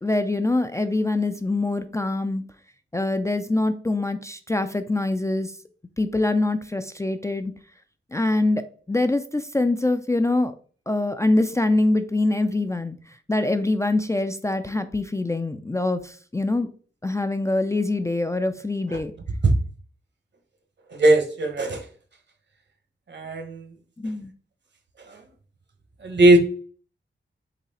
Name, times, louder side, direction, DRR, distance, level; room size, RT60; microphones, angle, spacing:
voice 1, 0.0-2.4 2.9-5.5 6.0-7.5 8.1-10.5 10.9-16.7 17.0-19.1 24.0-24.3, left 2 dB, 15° left, 8 dB, 0.3 m, -24 dB
voice 2, 20.9-21.8 23.1-23.6 26.0-26.4, right 2 dB, 60° right, 6 dB, 1.0 m, -18 dB
3.9 x 3.1 x 4.1 m, 0.42 s
wide cardioid pair, 100°, 20 cm